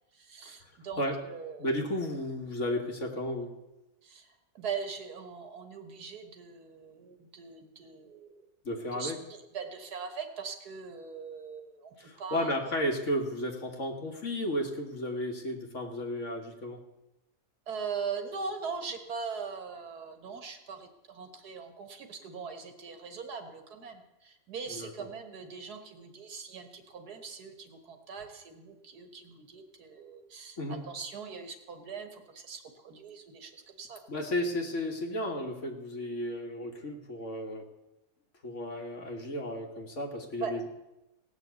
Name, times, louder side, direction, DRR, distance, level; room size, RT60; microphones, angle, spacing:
voice 1, 0.1-1.7 4.0-8.5 8.9-12.9 17.7-34.0 40.4-40.5, right 5 dB, 75° right, 6 dB, 2.0 m, -41 dB
voice 2, 1.6-3.5 8.6-9.2 12.0-16.8 24.8-24.9 30.6-30.9 34.1-37.7 38.4-40.7, left 1 dB, 50° left, 3 dB, 1.8 m, -33 dB
17.5 x 6.4 x 8.1 m, 0.97 s
omnidirectional pair, 1.7 m